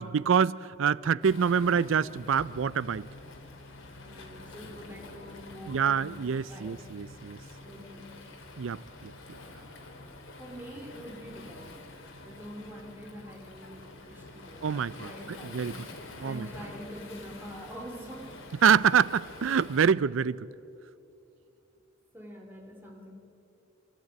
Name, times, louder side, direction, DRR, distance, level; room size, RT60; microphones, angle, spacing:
voice 1, 0.0-3.1 5.7-7.4 8.6-9.1 14.6-15.1 15.5-15.9 16.2-16.5 18.6-20.5, right 7 dB, 70° right, 0.4 m, -26 dB
Waves surf, 1.2-19.9, left 2 dB, 75° left, 2.7 m, -47 dB
voice 2, 4.0-6.1 6.5-6.7 7.6-8.1 10.4-11.8 12.2-18.4 22.1-23.1, equal, 10° right, 2.7 m, -45 dB
25.5 x 13.5 x 8.8 m
head